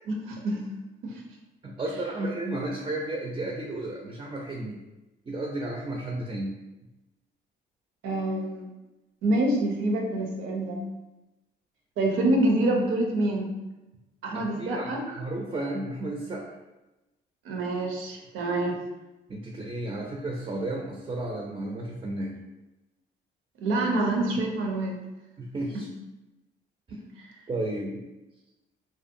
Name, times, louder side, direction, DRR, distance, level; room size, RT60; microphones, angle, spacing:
voice 1, 0.1-0.6 1.0-1.1 8.0-8.6 9.2-10.8 12.0-13.5 14.2-15.2 17.4-18.8 23.6-25.0 25.7-25.8 26.9-27.0, right 1 dB, 85° right, 1 dB, 0.6 m, -26 dB
voice 2, 1.6-4.8 5.3-6.5 14.5-16.6 19.3-22.3 25.4-25.9 27.5-28.0, right 1 dB, 25° right, 0 dB, 0.3 m, -33 dB
2.5 x 2.1 x 2.5 m, 1.0 s
cardioid pair, 90°, 20 cm